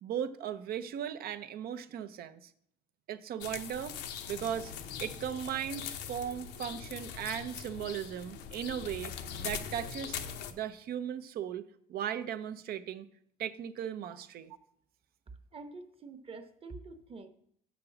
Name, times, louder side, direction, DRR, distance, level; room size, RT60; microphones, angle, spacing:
voice 1, 0.0-2.5 3.1-4.0 4.3-4.7 5.0-10.2 10.5-13.1 13.4-14.6, right 9 dB, 65° right, 10 dB, 0.7 m, -37 dB
sound 1, 3.4-10.5, left 7 dB, 85° left, 0.8 m, -41 dB
voice 2, 15.5-17.3, right 3 dB, 35° right, 9 dB, 1.0 m, -46 dB
6.8 x 5.2 x 7.1 m, 0.67 s
cardioid pair, 110°, 17 cm